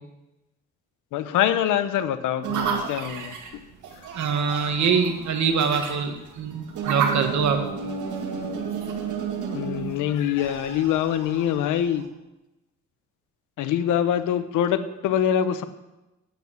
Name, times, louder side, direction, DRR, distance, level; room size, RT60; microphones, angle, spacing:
voice 1, 1.1-3.4 9.5-12.1 13.6-15.6, left 10 dB, 85° left, 12 dB, 1.0 m, -24 dB
sound 1, 2.4-12.0, right 6 dB, 80° right, 1.9 m, -32 dB
voice 2, 4.1-7.6, right 6 dB, 65° right, 6 dB, 1.8 m, -24 dB
9.5 x 9.0 x 7.5 m, 0.99 s
cardioid pair, 90°, 30 cm